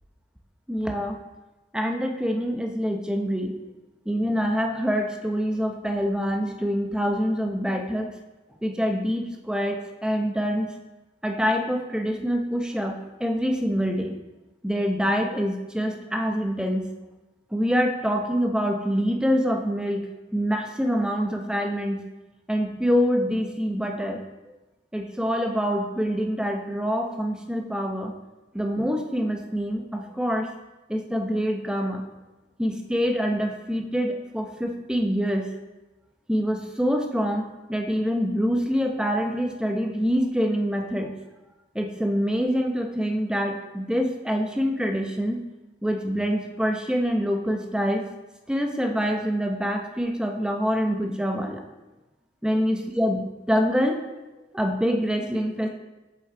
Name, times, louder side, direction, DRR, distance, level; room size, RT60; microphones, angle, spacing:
voice 1, 0.7-1.2 1.7-3.6 4.1-8.1 8.6-10.7 11.2-14.1 14.6-16.9 17.5-22.0 22.5-24.2 24.9-28.1 28.5-30.5 30.9-32.0 32.6-35.5 36.3-41.1 41.7-45.4 45.8-48.1 48.5-51.6 52.4-54.0 54.5-55.7, equal, 5° right, 3 dB, 0.7 m, -25 dB
8.1 x 6.1 x 3.8 m, 1.1 s
head